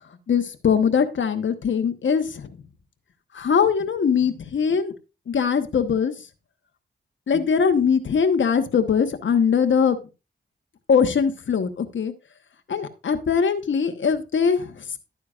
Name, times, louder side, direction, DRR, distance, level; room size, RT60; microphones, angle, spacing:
voice 1, 0.3-2.6 3.3-4.9 5.3-6.3 7.3-10.0 10.9-12.1 12.7-15.0, left 6 dB, 70° left, 8 dB, 1.1 m, -21 dB
12.0 x 9.3 x 2.4 m, 0.28 s
cardioid pair, 60°, 20 cm